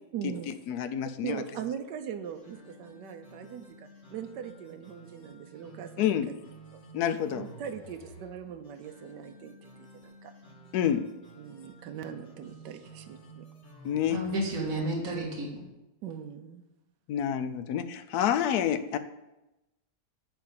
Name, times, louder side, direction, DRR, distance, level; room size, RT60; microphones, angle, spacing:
voice 1, 0.1-0.5 1.2-6.2 7.3-10.3 11.4-13.4 16.0-16.6, right 8 dB, 75° right, 7 dB, 1.3 m, -40 dB
voice 2, 0.7-1.4 6.0-6.3 6.9-7.4 10.7-11.1 13.8-14.2 17.1-19.0, left 9 dB, 70° left, 10 dB, 1.1 m, -28 dB
sound 1, 2.2-15.1, right 2 dB, 40° left, 1.9 m, -52 dB
voice 3, 14.1-15.5, right 1 dB, 55° right, -3 dB, 2.0 m, -31 dB
10.5 x 3.6 x 7.1 m, 0.96 s
omnidirectional pair, 1.9 m